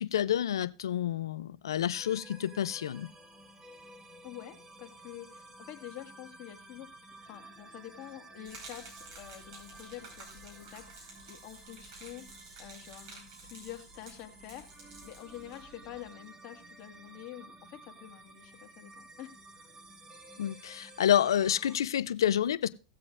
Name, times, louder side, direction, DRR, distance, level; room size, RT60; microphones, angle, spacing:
voice 1, 0.0-3.1 20.4-22.7, left 10 dB, 85° left, 0.5 m, -29 dB
sound 1, 1.9-21.8, right 2 dB, 25° right, 1.5 m, -53 dB
voice 2, 4.2-6.9 7.2-8.9 9.2-19.7, left 13 dB, 50° left, 1.8 m, -47 dB
Gurgling / Liquid, 8.4-16.1, right 3 dB, 65° right, 5.0 m, -52 dB
18.0 x 7.6 x 2.5 m
hypercardioid pair, 105°, 2 cm